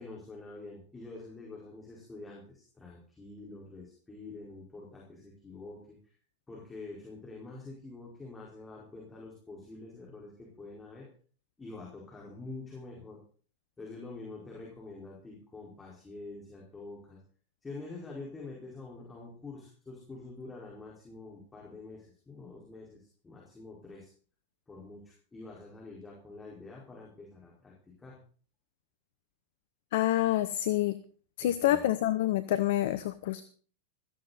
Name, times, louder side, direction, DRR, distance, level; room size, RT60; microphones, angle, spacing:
voice 1, 0.0-6.0 6.5-11.1 11.6-13.2 13.8-17.2 17.6-24.1 24.7-28.2 31.4-32.0, left 3 dB, 10° left, -4 dB, 4.8 m, -46 dB
voice 2, 29.9-31.0 31.4-33.4, left 13 dB, 55° left, 13 dB, 0.8 m, -27 dB
16.5 x 14.0 x 4.2 m, 0.43 s
figure-of-eight pair, 90°, 0 cm